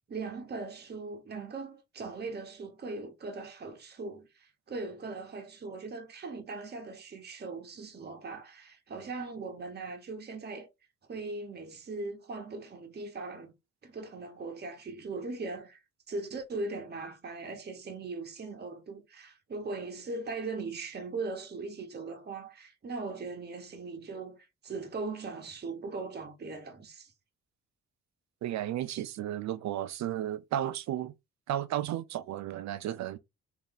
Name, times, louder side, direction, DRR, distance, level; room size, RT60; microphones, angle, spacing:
voice 1, 0.1-10.7 11.1-13.5 13.8-15.8 16.1-27.1, right 3 dB, 35° right, 1.0 m, -39 dB
voice 2, 28.4-31.1 31.5-33.2, right 12 dB, 65° right, 0.5 m, -33 dB
3.2 x 2.8 x 3.9 m
cardioid pair, 90°, 30 cm